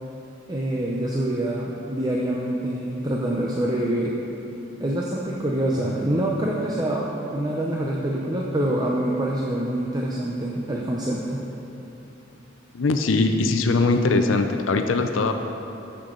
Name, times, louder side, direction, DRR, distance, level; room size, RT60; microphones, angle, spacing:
voice 1, 0.5-4.2 4.8-11.4, right 1 dB, 20° right, -3 dB, 0.6 m, -25 dB
voice 2, 12.7-15.3, left 3 dB, 85° left, 6 dB, 0.5 m, -21 dB
14.5 x 6.7 x 3.9 m, 2.9 s
head